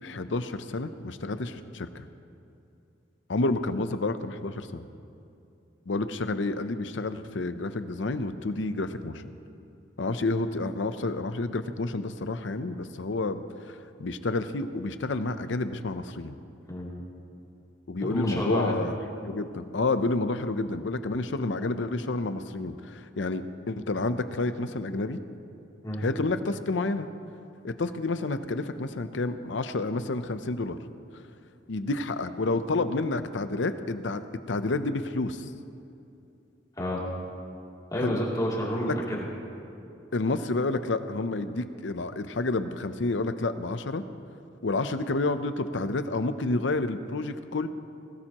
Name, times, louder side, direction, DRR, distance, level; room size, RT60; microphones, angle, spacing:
voice 1, 0.0-2.0 3.3-4.8 5.9-9.2 10.0-16.4 17.9-25.2 26.0-27.1 27.6-30.8 31.7-34.2 34.5-35.5 38.0-38.2 38.9-39.0 40.1-44.0 44.6-47.7, left 2 dB, 70° left, 10 dB, 0.7 m, -29 dB
voice 2, 18.0-18.7 25.8-26.0 36.8-37.0 37.9-39.2, equal, 20° left, -5 dB, 2.9 m, -29 dB
20.0 x 17.5 x 3.0 m, 2.7 s
head